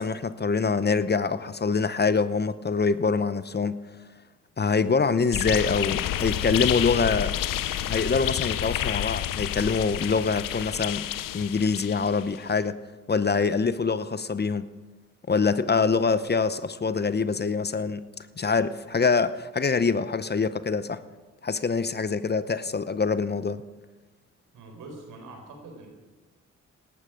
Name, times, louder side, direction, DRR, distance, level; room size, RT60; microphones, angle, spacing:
voice 1, 0.0-3.8 4.6-7.4 7.9-11.1 11.3-12.8 13.1-14.7 15.3-18.1 18.4-21.0 21.4-23.6, left 5 dB, 30° left, 14 dB, 0.7 m, -25 dB
sound 1, 5.3-12.4, left 12 dB, 85° left, 0.7 m, -29 dB
voice 2, 24.5-25.9, right 2 dB, 85° right, 2 dB, 4.3 m, -44 dB
17.0 x 12.5 x 5.1 m, 1.3 s
supercardioid pair, 55°, 32 cm